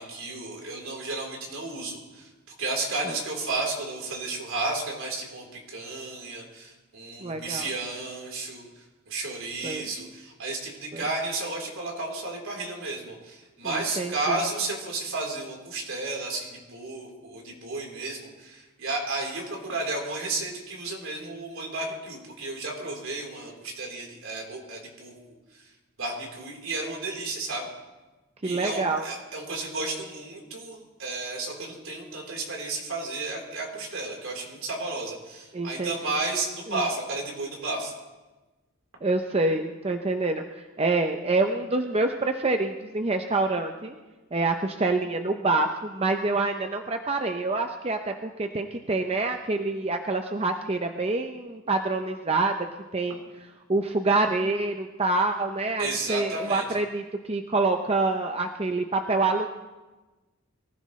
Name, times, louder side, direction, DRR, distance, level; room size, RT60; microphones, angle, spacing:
voice 1, 0.0-25.1 25.5-25.7 26.0-27.7 28.4-37.9 55.8-56.6, right 2 dB, 70° right, -1 dB, 3.8 m, -33 dB
voice 2, 7.2-7.7 9.6-9.9 10.9-11.0 13.6-14.4 28.4-29.1 35.5-36.0 36.7-36.8 39.0-40.4 40.8-44.0 44.3-52.7 52.9-53.2 53.7-59.5, right 3 dB, 30° right, 5 dB, 0.6 m, -26 dB
23.0 x 15.5 x 3.2 m, 1.2 s
head